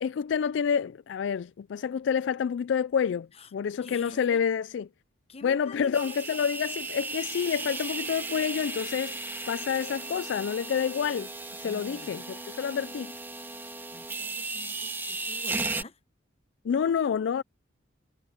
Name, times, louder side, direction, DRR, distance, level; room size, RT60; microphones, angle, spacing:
voice 1, 0.0-4.9 5.4-9.2 9.5-11.3 11.6-13.1 16.6-17.4, left 7 dB, 70° left, 0.3 m, -28 dB
voice 2, 3.8-4.4 5.3-6.4 11.6-12.1 13.9-15.9, left 2 dB, 30° left, 1.0 m, -47 dB
sound 1, 5.9-15.8, right 3 dB, 10° right, 1.9 m, -36 dB
head